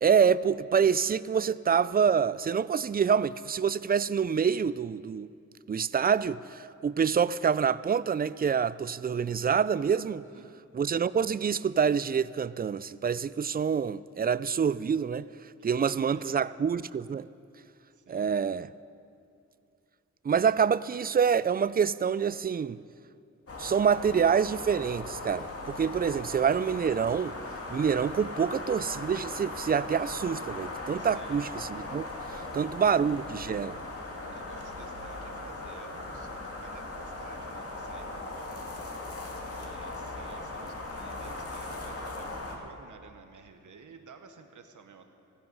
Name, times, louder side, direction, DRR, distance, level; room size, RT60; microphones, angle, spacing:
voice 1, 0.0-5.3 5.7-10.2 10.7-15.3 15.6-17.3 18.1-18.7 20.2-22.8 23.6-27.3 27.7-32.0 32.5-33.8, right 7 dB, 30° right, 0.4 m, -26 dB
voice 2, 15.6-16.5 17.9-18.3 20.4-20.5 30.9-31.5 32.2-33.0 34.2-38.9 39.5-45.1, right 5 dB, 75° right, 1.3 m, -52 dB
sound 1, 23.5-42.6, left 2 dB, 50° left, 2.1 m, -39 dB
15.5 x 13.5 x 5.5 m
cardioid pair, 60°, 31 cm